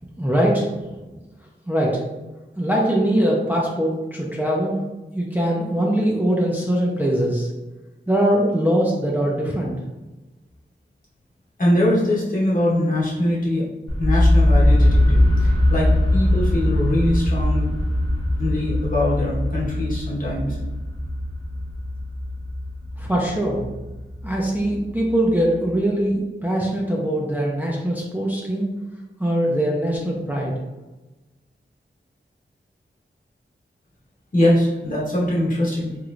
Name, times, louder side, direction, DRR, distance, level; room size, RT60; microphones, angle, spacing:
voice 1, 0.2-0.7 1.7-2.0 2.6-4.8 5.1-7.5 8.1-9.8 23.0-23.7 24.2-28.7 29.2-30.5, right 1 dB, 10° right, -4 dB, 0.5 m, -22 dB
voice 2, 11.6-13.6 14.0-17.7 18.4-20.6 34.3-36.0, left 1 dB, 45° left, -6 dB, 1.1 m, -22 dB
sound 1, 13.9-25.7, left 1 dB, 20° left, 0.9 m, -21 dB
3.0 x 3.0 x 2.5 m, 1.1 s
wide cardioid pair, 80°, 20 cm